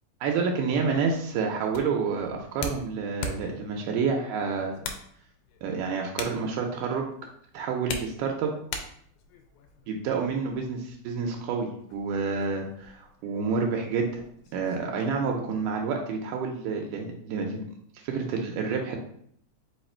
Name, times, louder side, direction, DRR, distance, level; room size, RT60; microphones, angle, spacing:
voice 1, 0.2-4.9 5.6-7.1 7.5-8.5 9.9-14.2 14.5-17.6 18.0-19.0, right 5 dB, 85° right, 1 dB, 2.1 m, -29 dB
sound 1, 0.8-15.5, left 3 dB, 80° left, 1.9 m, -43 dB
4.9 x 2.4 x 4.2 m, 0.66 s
omnidirectional pair, 3.7 m